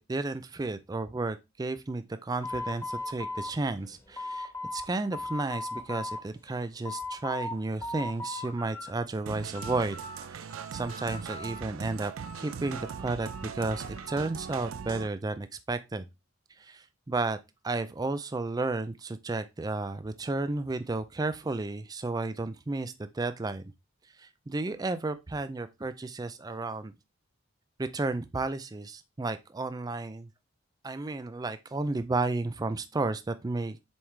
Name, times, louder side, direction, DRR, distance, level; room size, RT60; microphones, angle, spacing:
voice 1, 0.0-10.0 10.3-16.1 16.6-17.4 17.6-23.6 24.2-26.9 27.8-30.3 30.8-33.8, right 3 dB, 20° right, 0.4 m, -33 dB
sound 1, 2.4-4.9 5.1-6.2 6.6-7.5 7.8-8.9 9.2-10.2 10.5-11.8 12.2-14.3, left 2 dB, 15° left, 1.3 m, -39 dB
sound 2, 9.3-15.1, right 7 dB, 80° right, 0.4 m, -40 dB
7.2 x 4.7 x 3.3 m
head